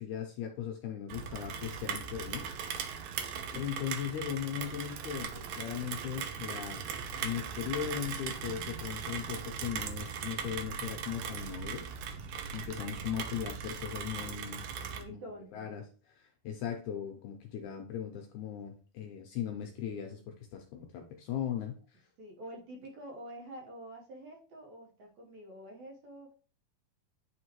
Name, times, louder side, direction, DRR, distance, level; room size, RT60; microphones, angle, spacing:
voice 1, 0.0-2.5 3.5-11.9 12.5-14.6 15.1-15.2 15.5-15.8 16.1-22.0, left 9 dB, 80° left, 3 dB, 1.8 m, -38 dB
Rain, 1.1-15.0, right 7 dB, 80° right, 1.7 m, -39 dB
voice 2, 3.0-3.6 14.4-15.7 22.2-26.3, right 1 dB, 65° right, 1 dB, 2.2 m, -48 dB
9.4 x 3.6 x 3.0 m, 0.39 s
omnidirectional pair, 4.0 m